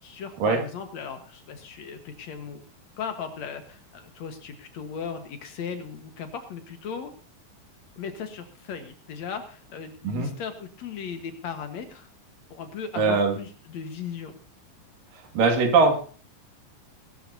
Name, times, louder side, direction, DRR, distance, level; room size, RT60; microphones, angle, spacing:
voice 1, 0.0-2.6 3.0-7.1 8.0-12.1 12.5-14.4, left 6 dB, 60° left, 7 dB, 2.4 m, -37 dB
voice 2, 13.0-13.4 15.3-16.0, right 4 dB, 90° right, 4 dB, 3.8 m, -20 dB
21.0 x 12.5 x 2.8 m, 0.40 s
omnidirectional pair, 3.8 m